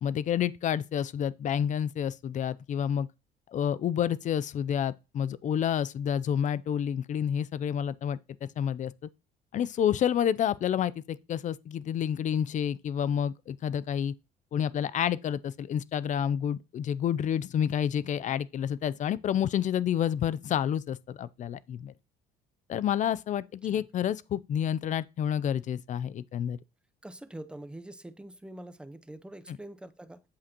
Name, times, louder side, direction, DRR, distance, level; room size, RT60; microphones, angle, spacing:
voice 1, 0.0-3.1 3.5-8.9 9.5-14.1 14.5-21.9 22.7-26.6 29.5-29.6, left 9 dB, 45° left, 0.5 m, -29 dB
voice 2, 27.0-30.2, right 1 dB, 5° right, 0.7 m, -44 dB
8.6 x 7.5 x 2.9 m
cardioid pair, 110°, 17 cm